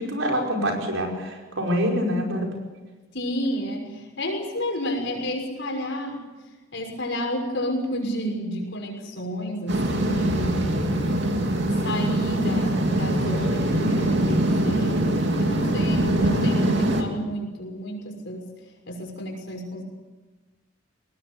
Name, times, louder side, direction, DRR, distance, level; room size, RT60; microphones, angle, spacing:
voice 1, 0.0-2.5, equal, 75° right, 1 dB, 5.3 m, -25 dB
voice 2, 3.1-6.2 6.7-10.7 11.0-11.4 11.8-18.5 18.9-19.8, equal, 60° left, 2 dB, 6.1 m, -31 dB
sound 1, 9.7-17.0, right 1 dB, 60° right, 2.8 m, -23 dB
21.0 x 19.0 x 8.1 m, 1.2 s
head